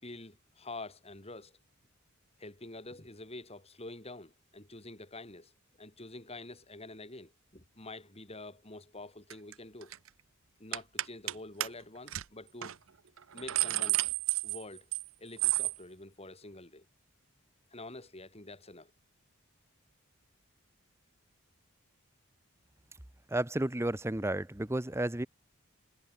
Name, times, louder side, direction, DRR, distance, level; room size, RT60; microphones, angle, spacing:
voice 1, 0.0-1.6 2.4-5.5 5.8-9.9 10.6-12.8 13.3-14.0 14.4-14.9 15.2-16.9 17.7-18.9, left 2 dB, 30° left, 5.0 m, -47 dB
sound 1, 9.3-9.5 9.8-10.1 10.7-11.3 11.6-11.7 12.1-12.2 12.6-12.7 13.2-15.1 15.4-15.8, right 17 dB, 65° right, 0.7 m, -31 dB
voice 2, 23.3-25.3, right 1 dB, 10° right, 0.9 m, -32 dB
head